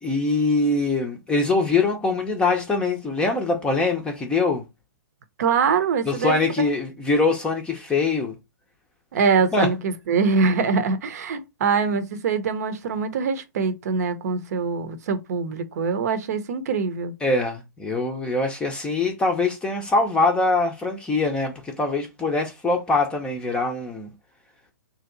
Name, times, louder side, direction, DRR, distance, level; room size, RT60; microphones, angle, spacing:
voice 1, 0.0-4.6 6.1-8.4 9.5-9.7 17.2-24.1, left 3 dB, 10° left, 0.6 m, -23 dB
voice 2, 5.4-6.7 9.1-17.1, right 5 dB, 55° right, 0.8 m, -23 dB
3.3 x 2.9 x 3.8 m
hypercardioid pair, 135°, 10 cm